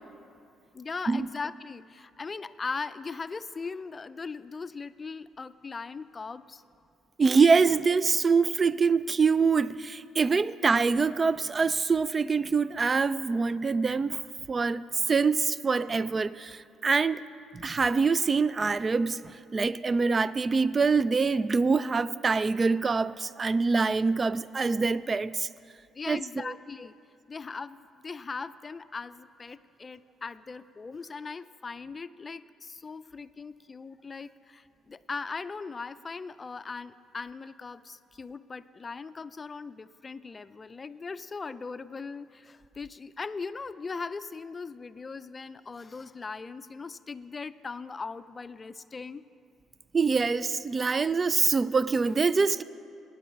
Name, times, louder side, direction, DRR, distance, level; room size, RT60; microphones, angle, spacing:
voice 1, 0.7-6.6 25.9-26.9 27.3-49.2, left 4 dB, 35° left, 0.4 m, -39 dB
voice 2, 7.2-14.2 14.5-17.2 17.5-25.5 26.1-26.5 49.9-52.6, right 4 dB, 35° right, 0.3 m, -25 dB
9.4 x 9.0 x 8.6 m
supercardioid pair, 65°, 0 cm